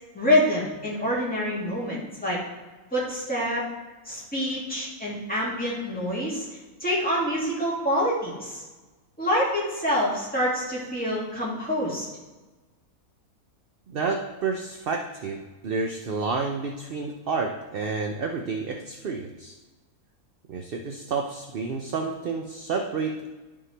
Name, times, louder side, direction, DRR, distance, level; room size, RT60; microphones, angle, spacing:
voice 1, 0.1-2.4 2.9-3.6 4.1-6.5 6.8-8.6 9.2-12.1, equal, 5° left, -7 dB, 2.3 m, -26 dB
voice 2, 13.9-19.6 20.5-23.3, right 4 dB, 55° right, 3 dB, 0.6 m, -30 dB
11.0 x 5.3 x 3.3 m, 1.2 s
omnidirectional pair, 1.6 m